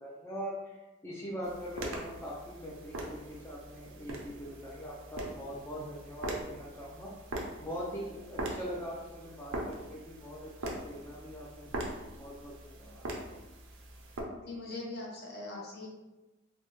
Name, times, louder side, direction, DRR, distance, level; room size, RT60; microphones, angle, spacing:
voice 1, 0.0-7.1 7.6-10.5 10.8-11.8 12.2-13.0, equal, 15° left, -5 dB, 0.4 m, -42 dB
sound 1, 1.4-14.2, right 1 dB, 90° right, 0.6 m, -42 dB
voice 2, 14.3-15.9, left 2 dB, 55° left, -3 dB, 0.8 m, -41 dB
3.2 x 2.0 x 3.0 m, 1.1 s
head